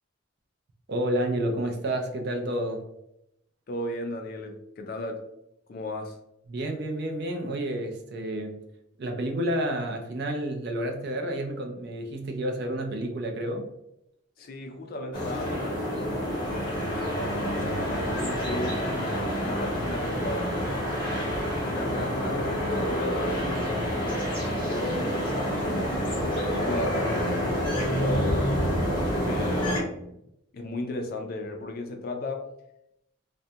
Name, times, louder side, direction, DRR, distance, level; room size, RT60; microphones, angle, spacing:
voice 1, 0.9-2.8 6.5-8.6 9.0-13.7, right 1 dB, 50° right, 3 dB, 0.4 m, -30 dB
voice 2, 3.7-5.2 5.7-6.2 14.4-17.2 17.5-18.8 19.3-20.9 21.7-24.2 24.7-28.7 29.2-30.2 30.5-32.5, left 2 dB, 45° left, 4 dB, 0.3 m, -35 dB
sound 1, 15.1-29.8, equal, 25° left, 0.7 m, -28 dB
2.3 x 2.1 x 2.7 m, 0.81 s
head